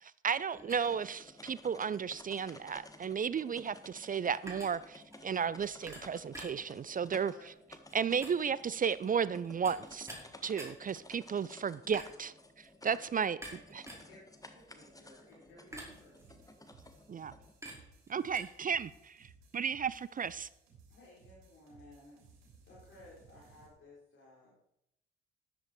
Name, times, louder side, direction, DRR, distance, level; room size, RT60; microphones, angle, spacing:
voice 1, 0.0-7.3 7.9-10.1 10.4-13.4 17.1-17.3 18.1-19.3 19.5-20.5, right 7 dB, 30° right, 0.5 m, -34 dB
sound 1, 0.5-17.5, left 2 dB, 10° left, 1.6 m, -55 dB
sound 2, 0.5-18.4, right 1 dB, 10° right, 4.9 m, -52 dB
voice 2, 12.9-13.2 13.5-13.6 13.8-14.2 14.5-16.5, left 2 dB, 70° left, 4.2 m, -59 dB
sound 3, 15.7-23.7, right 4 dB, 70° right, 3.4 m, -61 dB
voice 3, 20.9-22.2 22.6-24.7, left 2 dB, 45° left, 4.8 m, -57 dB
13.5 x 10.5 x 4.6 m
figure-of-eight pair, 40°, 29 cm